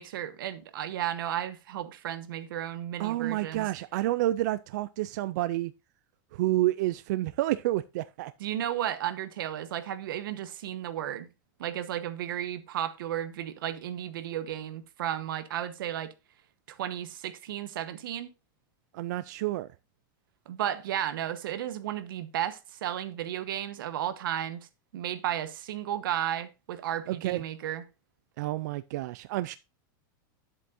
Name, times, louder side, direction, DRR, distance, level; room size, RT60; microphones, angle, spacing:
voice 1, 0.0-3.7 8.4-11.3 11.6-16.1 16.7-18.3 20.5-24.7 24.9-27.8, right 11 dB, 85° right, 1.1 m, -33 dB
voice 2, 3.0-5.7 6.3-8.3 18.9-19.7 27.1-27.4 28.4-29.6, right 16 dB, 55° right, 0.4 m, -29 dB
10.0 x 8.1 x 2.6 m
supercardioid pair, 170°, 11 cm